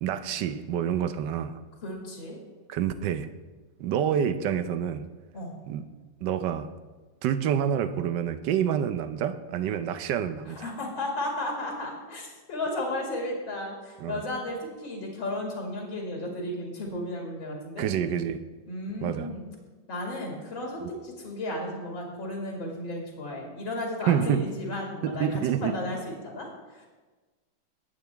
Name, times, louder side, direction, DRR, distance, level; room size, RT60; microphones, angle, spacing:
voice 1, 0.0-1.6 2.7-3.3 3.8-5.1 5.7-5.9 6.2-6.7 7.2-10.7 14.0-14.2 17.8-18.4 19.0-19.3 24.1-24.5 25.0-25.8, right 9 dB, 70° right, 11 dB, 1.3 m, -27 dB
voice 2, 1.8-2.4 5.3-5.5 10.5-17.9 18.7-19.5 19.9-26.9, left 1 dB, 75° left, -1 dB, 2.9 m, -34 dB
20.5 x 8.7 x 3.4 m, 1.3 s
omnidirectional pair, 2.1 m